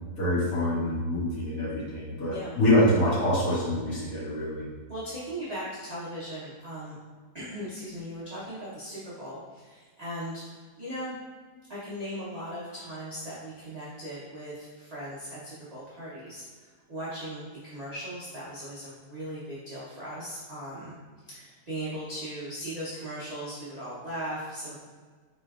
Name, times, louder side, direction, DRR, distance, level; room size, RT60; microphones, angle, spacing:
voice 1, 0.1-4.6, left 1 dB, 60° left, -8 dB, 1.7 m, -25 dB
voice 2, 4.9-7.0 7.3-11.1 11.7-21.0 21.3-24.8, equal, 45° right, -9 dB, 0.5 m, -38 dB
4.3 x 3.1 x 2.3 m, 1.5 s
omnidirectional pair, 1.8 m